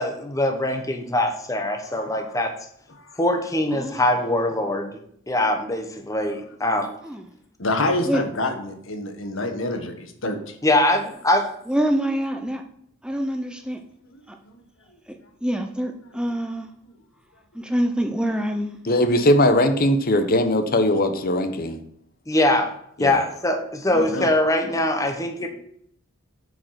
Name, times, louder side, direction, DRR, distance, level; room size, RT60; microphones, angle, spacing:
voice 1, 0.0-2.5 3.2-4.9 5.3-6.9 10.6-11.5 22.3-22.7 23.0-25.5, left 1 dB, 15° left, 4 dB, 1.1 m, -22 dB
voice 2, 1.8-2.4 2.9-3.2 7.6-10.5 14.5-14.6 23.9-24.3, left 2 dB, 75° left, 6 dB, 1.4 m, -27 dB
voice 3, 3.7-4.1 7.0-7.3 8.1-8.2 11.7-12.6 13.0-13.8 14.3-14.4 15.1-16.7 17.5-18.8 23.9-24.2 24.6-24.8, equal, 5° right, 5 dB, 0.6 m, -26 dB
voice 4, 18.9-21.8 23.0-23.2, left 1 dB, 45° left, 8 dB, 0.9 m, -19 dB
9.1 x 5.3 x 5.9 m, 0.69 s
head